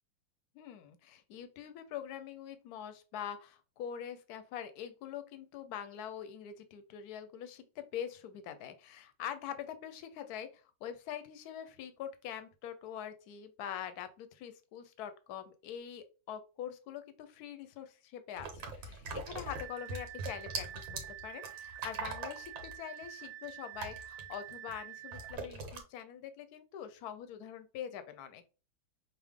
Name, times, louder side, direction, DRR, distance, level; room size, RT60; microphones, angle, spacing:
voice 1, 0.5-20.7 21.2-28.5, left 9 dB, 70° left, 10 dB, 0.9 m, -44 dB
sound 1, 18.4-24.8 25.1-25.8, right 4 dB, 75° right, 1.7 m, -42 dB
sound 2, 19.5-25.3, right 13 dB, 55° right, 1.1 m, -48 dB
5.6 x 2.1 x 3.5 m, 0.33 s
omnidirectional pair, 2.2 m